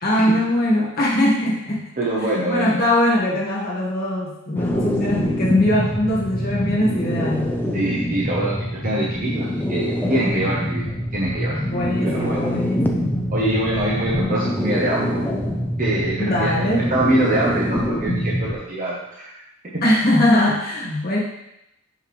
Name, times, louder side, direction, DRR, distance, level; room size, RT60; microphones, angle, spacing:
voice 1, 0.0-1.9 2.5-7.5 11.7-13.2 16.2-16.9 19.8-21.2, left 1 dB, 45° left, -4 dB, 1.6 m, -21 dB
voice 2, 2.0-2.8 7.7-10.8 11.1-12.5 13.3-15.2 15.8-19.3 19.7-19.8, right 1 dB, 40° right, -5 dB, 0.9 m, -24 dB
sound 1, 4.5-18.5, equal, 10° left, 0.4 m, -25 dB
5.9 x 5.5 x 3.2 m, 0.86 s
head